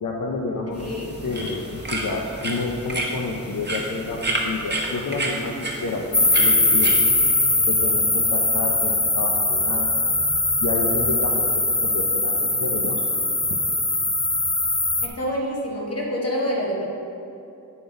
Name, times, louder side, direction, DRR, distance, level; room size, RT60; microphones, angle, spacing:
voice 1, 0.0-1.0 1.2-9.9 10.6-13.0 13.5-13.6, left 3 dB, 70° left, 0 dB, 0.6 m, -30 dB
voice 2, 0.7-1.0 15.0-16.9, equal, 45° left, -3 dB, 1.4 m, -27 dB
sound 1, 0.7-7.3, right 2 dB, 30° right, 1.0 m, -30 dB
sound 2, 6.1-15.1, left 2 dB, 15° left, 0.5 m, -21 dB
9.5 x 4.0 x 5.0 m, 2.7 s
wide cardioid pair, 55°, 33 cm